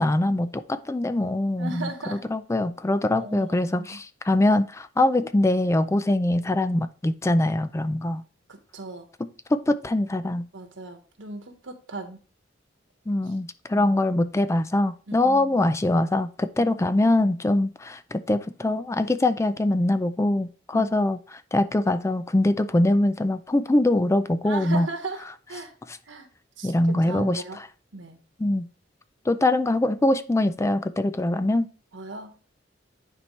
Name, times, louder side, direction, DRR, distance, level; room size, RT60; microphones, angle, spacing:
voice 1, 0.0-8.2 9.2-10.5 13.1-24.9 25.9-26.0 26.6-27.4 28.4-28.7 29.3-31.7, left 1 dB, 15° left, 0.4 m, -23 dB
voice 2, 1.6-2.3 3.1-4.0 8.5-9.1 10.5-12.2 15.1-15.7 20.7-21.0 24.5-25.2 25.5-25.7 26.1-26.3 26.6-27.6 27.9-28.2 31.9-32.3, right 2 dB, 80° right, 1.3 m, -37 dB
9.9 x 4.5 x 3.2 m
head